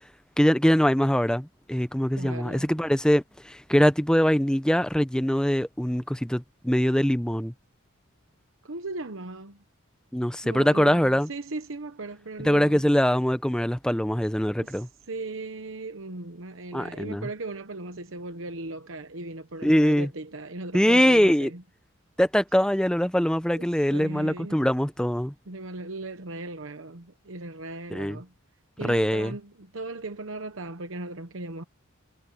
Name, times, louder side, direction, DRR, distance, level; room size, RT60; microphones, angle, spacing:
voice 1, 0.4-7.5 10.1-11.3 12.4-14.9 16.7-17.3 19.6-20.1 20.7-21.5 22.2-25.3 27.9-28.2 28.8-29.3, equal, 5° left, 0.7 m, -23 dB
voice 2, 2.2-2.7 8.6-9.6 10.4-12.8 14.6-21.6 23.6-23.7 23.9-24.7 25.5-28.3 28.8-31.6, right 2 dB, 65° right, 1.1 m, -38 dB
head